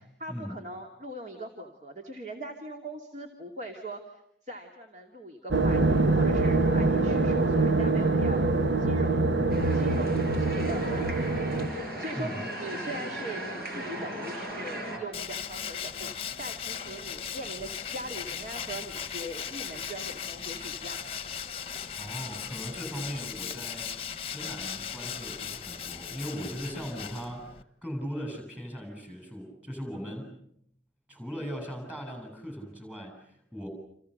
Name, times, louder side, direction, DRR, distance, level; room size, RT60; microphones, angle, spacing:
voice 1, 0.0-9.2 9.7-21.0 26.8-27.0, right 1 dB, 40° right, 2 dB, 2.6 m, -41 dB
sound 1, 5.5-11.7, right 3 dB, 85° right, 1.5 m, -24 dB
sound 2, 9.5-15.0, right 1 dB, 55° right, 6.7 m, -37 dB
Tools, 15.1-27.6, left 8 dB, 30° left, 1.1 m, -38 dB
voice 2, 22.0-30.3 31.1-33.7, equal, 5° right, 4 dB, 7.7 m, -39 dB
30.0 x 28.5 x 6.7 m, 0.74 s
head